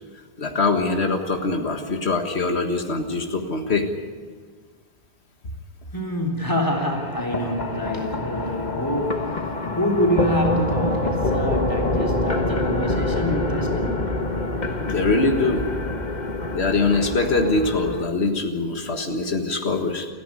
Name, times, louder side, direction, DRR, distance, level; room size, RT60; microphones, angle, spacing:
voice 1, 0.4-3.9 14.9-15.7 16.5-20.1, left 3 dB, 85° left, 4 dB, 2.0 m, -23 dB
voice 2, 5.9-14.0, equal, 20° left, 2 dB, 3.5 m, -26 dB
sound 1, 6.7-18.1, left 2 dB, 45° left, 1.7 m, -26 dB
29.5 x 10.5 x 9.7 m, 1.5 s
omnidirectional pair, 1.1 m